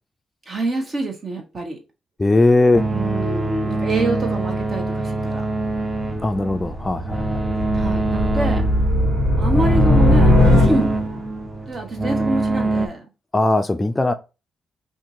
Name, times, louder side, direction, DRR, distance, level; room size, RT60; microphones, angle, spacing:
voice 1, 0.5-1.8 2.9-5.4 7.7-8.7 9.4-10.4 10.6-10.9 11.7-13.1, right 2 dB, 45° right, 1.1 m, -26 dB
voice 2, 2.2-2.9 6.2-7.4 13.3-14.1, left 2 dB, 20° left, 0.4 m, -18 dB
sound 1, 2.7-12.9, right 2 dB, 20° right, 0.7 m, -24 dB
sound 2, 6.0-11.2, left 1 dB, 85° right, 1.6 m, -19 dB
2.7 x 2.6 x 3.7 m
cardioid pair, 65°, 0 cm